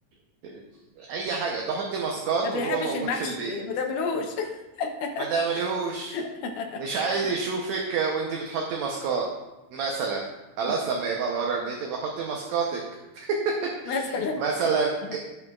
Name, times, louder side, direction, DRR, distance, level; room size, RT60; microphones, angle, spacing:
voice 1, 1.0-3.5 5.3-6.2 6.8-9.3 9.7-10.2 10.6-12.8 13.1-13.4 13.8-14.0 14.4-15.2, right 5 dB, 70° right, 0 dB, 2.0 m, -28 dB
voice 2, 2.4-5.3 6.1-6.8 7.2-7.3 13.9-14.4 15.1-15.2, left 4 dB, 85° left, 2 dB, 2.4 m, -30 dB
16.5 x 5.4 x 2.4 m, 1.0 s
omnidirectional pair, 3.5 m